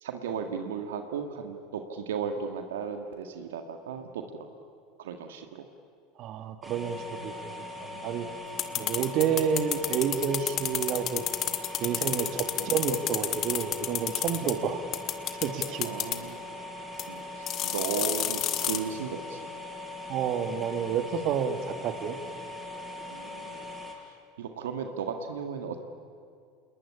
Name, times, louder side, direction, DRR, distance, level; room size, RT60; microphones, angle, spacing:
voice 1, 0.0-4.5 5.0-5.7 8.6-9.0 12.6-12.8 15.8-16.4 17.1-19.5 21.8-21.9 23.1-23.6 24.4-25.9, right 6 dB, 70° right, 6 dB, 1.9 m, -36 dB
voice 2, 6.2-7.5 7.9-8.3 8.8-11.2 11.8-14.8 15.4-15.9 20.1-21.6 21.8-22.2, right 7 dB, 50° right, 9 dB, 2.0 m, -29 dB
sound 1, 6.6-23.9, left 2 dB, 5° right, 7.1 m, -41 dB
sound 2, 8.6-14.5 14.9-16.2 17.0-17.1 17.5-18.8, left 12 dB, 45° left, 1.9 m, -30 dB
28.0 x 20.0 x 9.8 m, 2.3 s
hypercardioid pair, 80°, 0 cm